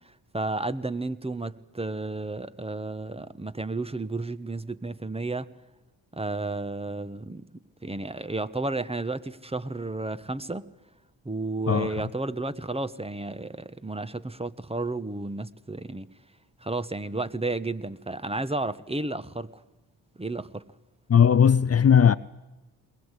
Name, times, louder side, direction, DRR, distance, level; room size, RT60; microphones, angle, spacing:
voice 1, 0.3-5.5 6.1-7.4 7.8-10.7 11.2-16.1 16.6-19.6 20.2-20.6, right 2 dB, 15° right, 1.3 m, -32 dB
voice 2, 21.1-22.2, left 7 dB, 35° left, 0.7 m, -18 dB
21.5 x 20.0 x 8.3 m
supercardioid pair, 50°, 42 cm